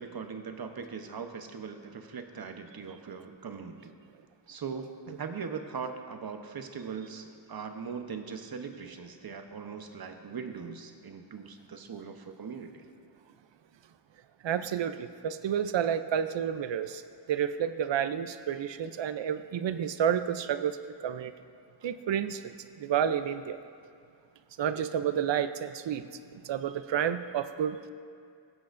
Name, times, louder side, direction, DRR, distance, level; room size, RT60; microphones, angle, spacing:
voice 1, 0.0-3.9 4.5-12.9, right 6 dB, 55° right, 0.9 m, -40 dB
voice 2, 14.4-17.0 17.3-20.8 21.0-21.3 21.8-22.5 22.8-23.6 24.6-26.0 26.3-27.9, right 9 dB, 70° right, 0.6 m, -30 dB
19.5 x 7.7 x 2.5 m
wide cardioid pair, 70°, 45 cm